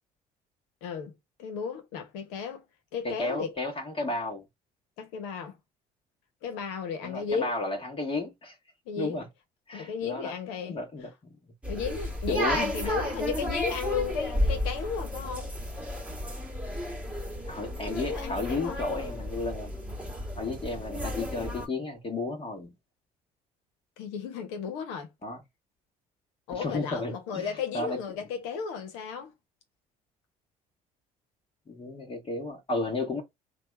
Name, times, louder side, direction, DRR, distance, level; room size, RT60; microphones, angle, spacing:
voice 1, 0.8-1.1 1.4-2.6 2.9-3.5 5.0-5.5 6.4-7.5 8.9-9.2 9.7-10.8 11.7-15.5 17.8-18.8 24.0-25.1 26.5-29.3, left 6 dB, 70° left, 1.1 m, -34 dB
voice 2, 3.0-4.4 7.0-8.6 9.0-9.3 9.7-10.3 10.6-11.1 12.3-13.0 17.4-19.7 20.4-22.7 25.2-25.4 26.5-28.0 31.7-33.2, left 2 dB, 30° left, 1.2 m, -33 dB
sound 1, 11.6-21.7, equal, 5° right, 1.3 m, -33 dB
3.3 x 2.4 x 3.2 m
hypercardioid pair, 55°, 19 cm